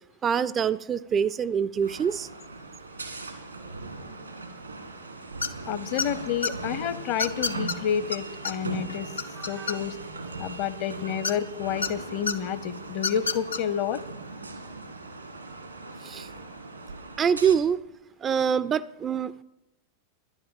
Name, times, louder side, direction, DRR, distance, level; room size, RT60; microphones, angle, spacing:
voice 1, 0.2-2.3 9.4-9.8 16.0-16.3 17.2-17.8 18.2-19.4, right 7 dB, 25° right, 16 dB, 0.4 m, -25 dB
sound 1, 1.8-17.5, right 3 dB, 80° right, 1.7 m, -39 dB
sound 2, 5.4-5.7 6.0-6.5 7.2-7.8 8.1-8.2 8.4-8.5 8.9-10.1 11.2-11.9 12.3-12.4 12.9-13.6, left 4 dB, 80° left, 0.7 m, -28 dB
voice 2, 5.7-9.1 9.5-10.0 10.4-14.0, left 9 dB, 45° left, 15 dB, 0.8 m, -29 dB
10.5 x 10.5 x 7.2 m, 0.94 s
figure-of-eight pair, 90°, 0 cm